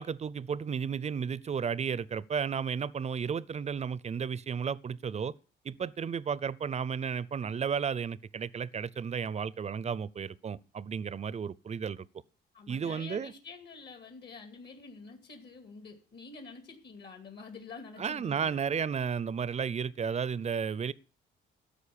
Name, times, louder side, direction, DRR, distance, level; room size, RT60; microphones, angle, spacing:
voice 1, 0.0-5.3 5.6-12.1 12.7-13.3 18.0-20.9, right 6 dB, 35° right, 0.5 m, -33 dB
voice 2, 12.5-18.6, left 4 dB, 60° left, 2.3 m, -48 dB
13.5 x 5.1 x 8.5 m
cardioid pair, 90°, 20 cm